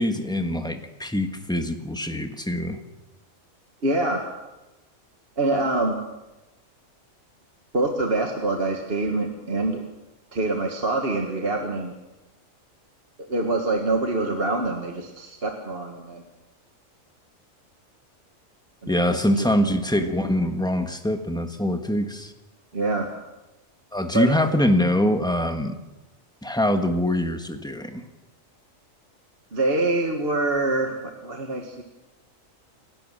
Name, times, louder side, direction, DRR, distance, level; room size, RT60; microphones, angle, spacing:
voice 1, 0.0-2.8 18.9-22.3 23.9-25.7 26.4-28.0, left 1 dB, 5° left, 6 dB, 1.4 m, -24 dB
voice 2, 3.8-4.2 5.4-6.0 7.7-9.8 10.3-11.9 13.3-16.2 18.8-19.2 22.7-23.1 24.1-24.3 29.5-31.8, right 2 dB, 45° right, 3 dB, 1.9 m, -25 dB
28.5 x 12.0 x 7.6 m, 1.0 s
omnidirectional pair, 1.4 m